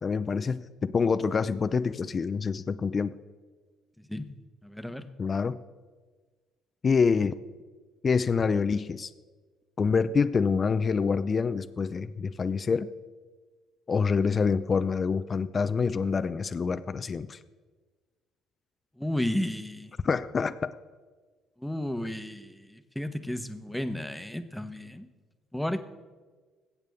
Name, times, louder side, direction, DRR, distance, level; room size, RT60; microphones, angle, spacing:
voice 1, 0.0-3.1 5.2-5.6 6.8-7.3 8.0-9.1 9.8-12.9 13.9-17.4 20.0-20.7, left 5 dB, 40° left, 12 dB, 0.5 m, -26 dB
voice 2, 4.1-5.0 19.0-19.9 21.6-25.1 25.5-25.8, left 1 dB, 5° left, 9 dB, 1.1 m, -33 dB
21.5 x 8.1 x 3.6 m, 1.4 s
supercardioid pair, 65°, 0 cm